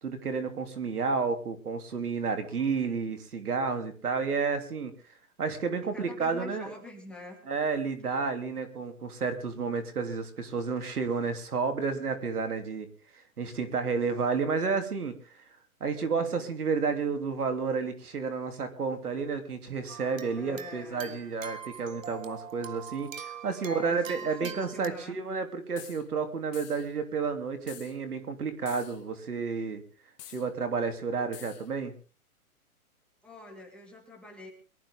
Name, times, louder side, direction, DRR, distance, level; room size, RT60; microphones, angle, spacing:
voice 1, 0.0-4.9 5.4-6.7 7.5-12.9 13.1-15.4 15.8-29.8 30.3-31.9, right 5 dB, 90° right, 8 dB, 3.3 m, -31 dB
voice 2, 2.4-2.7 5.8-7.5 20.4-21.3 23.6-25.2 33.2-34.5, left 2 dB, ahead, -1 dB, 2.6 m, -46 dB
sound 1, 19.9-24.9, right 8 dB, 60° right, 1.8 m, -43 dB
sound 2, 25.8-26.0 26.5-26.9 27.7-28.0 28.7-29.0 30.2-30.5 31.3-31.7, left 12 dB, 30° left, 1.3 m, -48 dB
23.0 x 12.5 x 3.7 m, 0.37 s
hypercardioid pair, 155°, 44 cm